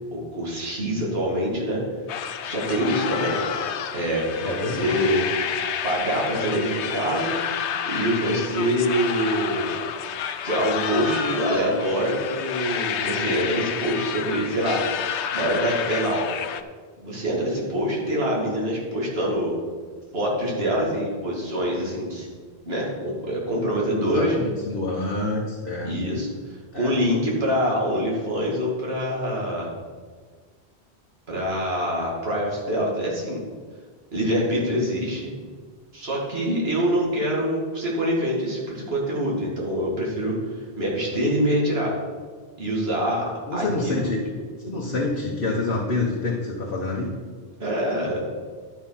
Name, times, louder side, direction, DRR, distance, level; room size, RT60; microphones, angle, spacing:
voice 1, 0.1-1.8 2.4-3.4 3.9-5.2 5.8-7.4 7.9-9.7 10.4-14.8 15.3-16.3 17.0-19.6 20.1-22.3 22.6-24.4 25.8-26.3 26.7-29.7 31.3-33.4 34.1-35.3 35.9-41.9 42.6-44.1 47.6-48.2, equal, 65° right, -3 dB, 2.6 m, -25 dB
sound 1, 2.1-16.6, left 8 dB, 90° left, 0.9 m, -30 dB
voice 2, 4.4-4.9 23.9-25.9 26.7-26.9 43.5-44.2 44.6-47.1, left 2 dB, 55° left, -3 dB, 1.4 m, -27 dB
12.0 x 5.9 x 5.8 m, 1.5 s
omnidirectional pair, 1.1 m